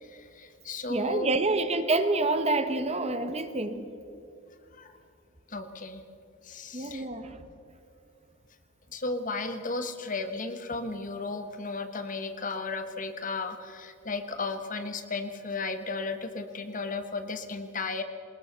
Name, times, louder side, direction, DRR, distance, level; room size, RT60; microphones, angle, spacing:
voice 1, 0.0-1.3 4.8-4.9 5.5-6.0 6.4-7.0 8.9-18.0, left 3 dB, 40° left, 9 dB, 1.3 m, -34 dB
voice 2, 0.9-3.8 6.7-7.3, right 2 dB, 30° right, 9 dB, 1.2 m, -27 dB
20.5 x 20.5 x 6.8 m, 2.6 s
head